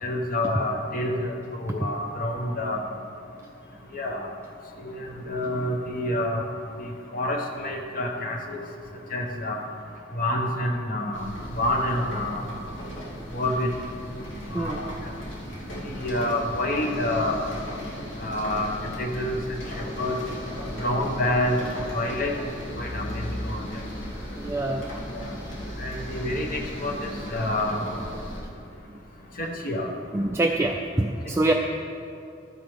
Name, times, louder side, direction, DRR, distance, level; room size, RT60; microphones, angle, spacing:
voice 1, 0.0-2.8 3.9-4.3 4.8-6.4 6.8-8.6 9.1-9.6 10.1-12.5 13.3-13.7 14.5-15.1 15.8-17.4 18.2-18.7 19.0-19.4 19.7-20.2 20.8-21.6 21.9-22.5 22.8-23.8 25.1-25.3 25.8-27.9 29.4-29.9, left 1 dB, 45° left, 1 dB, 1.1 m, -28 dB
sound 1, 11.1-28.4, equal, 75° left, 2.6 m, -36 dB
voice 2, 24.4-24.9 30.1-31.5, right 2 dB, 15° right, 1 dB, 0.3 m, -25 dB
13.0 x 8.8 x 3.6 m, 2.5 s
head